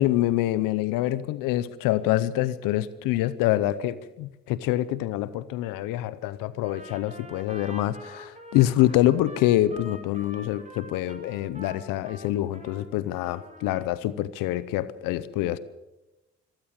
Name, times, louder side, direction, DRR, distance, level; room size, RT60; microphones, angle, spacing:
voice 1, 0.0-15.6, left 14 dB, 85° left, 17 dB, 0.8 m, -26 dB
Trumpet, 6.6-12.8 13.1-13.9, equal, 20° right, 5.0 m, -45 dB
25.5 x 14.5 x 7.3 m, 1.0 s
supercardioid pair, 50°, 32 cm